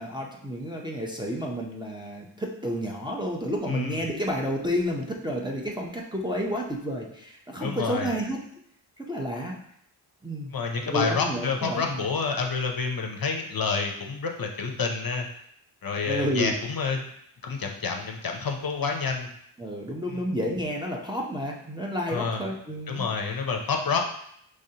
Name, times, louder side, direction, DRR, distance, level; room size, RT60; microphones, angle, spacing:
voice 1, 0.0-8.4 9.0-9.6 10.2-10.5 10.9-12.1 16.0-16.5 19.6-23.1, equal, 10° right, -2 dB, 0.6 m, -30 dB
voice 2, 3.7-4.0 7.6-8.1 10.5-15.3 15.8-17.0 17.4-19.3 20.1-20.2 22.1-22.4 22.9-24.0, left 5 dB, 50° left, 2 dB, 0.6 m, -28 dB
5.1 x 3.3 x 2.8 m, 0.70 s
wide cardioid pair, 100°, 47 cm